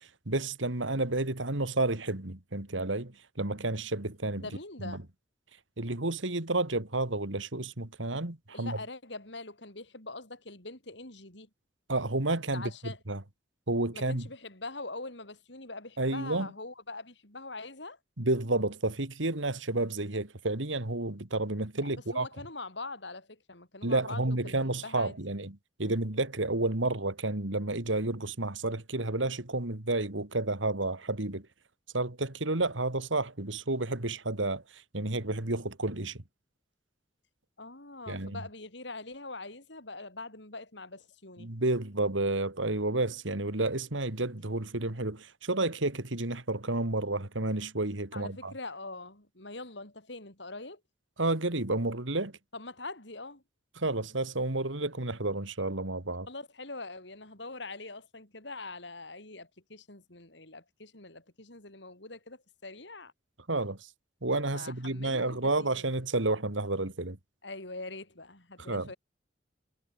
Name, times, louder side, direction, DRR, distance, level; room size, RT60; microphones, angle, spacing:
voice 1, 0.3-4.5 4.8-5.0 5.8-8.8 11.9-13.2 13.7-14.3 16.0-16.5 18.2-22.3 23.8-31.5 31.9-34.6 34.9-36.2 38.1-38.4 41.4-48.5 51.2-52.3 53.8-56.3 63.5-63.8 64.2-67.2 68.7-68.9, right 2 dB, 85° right, 2.7 m, -31 dB
voice 2, 4.4-5.0 8.5-11.5 12.5-13.0 13.9-18.0 21.8-25.2 37.6-41.5 48.1-50.8 52.5-53.4 56.3-63.1 64.5-65.9 67.4-69.0, left 3 dB, 70° left, 5.6 m, -43 dB
head